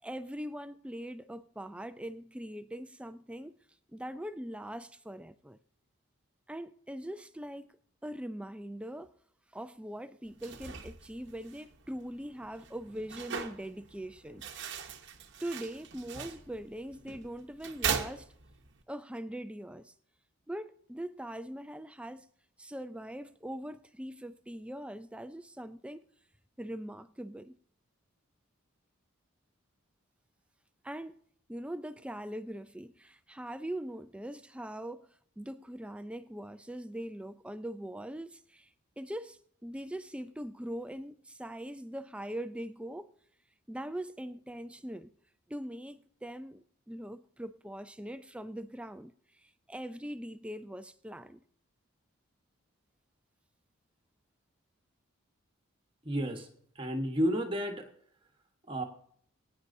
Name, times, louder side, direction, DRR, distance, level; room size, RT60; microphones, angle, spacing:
voice 1, 0.0-3.6 3.9-5.6 6.5-7.7 8.0-9.1 9.5-14.4 15.4-18.3 18.9-19.9 20.5-22.3 22.6-26.0 26.6-27.6 30.8-31.2 31.5-35.1 35.4-38.7 39.0-43.1 43.7-45.1 45.5-51.4, right 1 dB, 5° right, 0.4 m, -42 dB
sound 1, 10.3-18.8, right 6 dB, 50° right, 1.0 m, -40 dB
voice 2, 56.0-56.5 56.7-57.9 58.7-58.8, equal, 25° right, 1.2 m, -31 dB
22.0 x 9.7 x 2.7 m
head